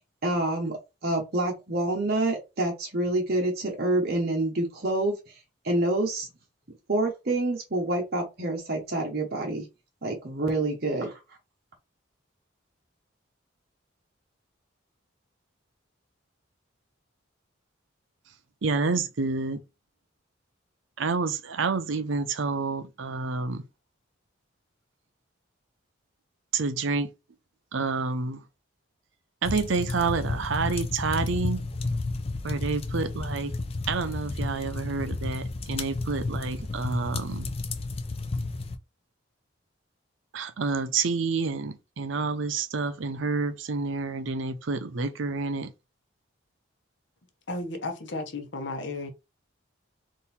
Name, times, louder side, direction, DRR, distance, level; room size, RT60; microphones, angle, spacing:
voice 1, 0.2-6.3 6.9-9.7 10.0-11.2, right 2 dB, 50° right, 0.9 m, -27 dB
voice 2, 18.6-19.6 21.0-23.6 26.5-27.1 27.7-28.4 29.4-31.6 32.4-33.5 33.9-37.5 40.3-45.7, right 4 dB, 70° right, 0.6 m, -28 dB
sound 1, 29.4-38.8, left 2 dB, 30° left, 0.4 m, -32 dB
voice 3, 47.5-49.1, left 2 dB, 60° left, 0.8 m, -33 dB
3.9 x 2.6 x 4.1 m
head